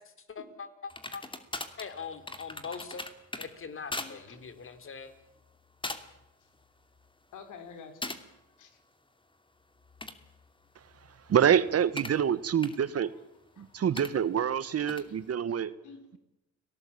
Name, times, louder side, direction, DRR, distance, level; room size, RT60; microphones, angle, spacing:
voice 1, 0.3-0.7 1.1-1.2 1.8-3.0 3.4-5.1, left 5 dB, 45° left, 10 dB, 3.6 m, -41 dB
sound 1, 0.9-3.5 3.9-4.1 4.5-4.7 5.4-5.6 5.8-6.2 6.6-7.1 8.0-8.2 9.8-12.2 12.6-12.8 14.0-14.1 14.9-15.1, left 2 dB, 15° left, 2.8 m, -40 dB
voice 2, 7.3-8.1 8.6-8.8 12.8-13.2 13.6-13.8 14.7-15.2 15.5-16.2, left 6 dB, 80° left, 8 dB, 4.2 m, -50 dB
voice 3, 11.3-13.1 13.6-15.7, right 8 dB, 55° right, 16 dB, 1.5 m, -26 dB
30.0 x 19.0 x 8.7 m, 0.88 s
cardioid pair, 90°, 30 cm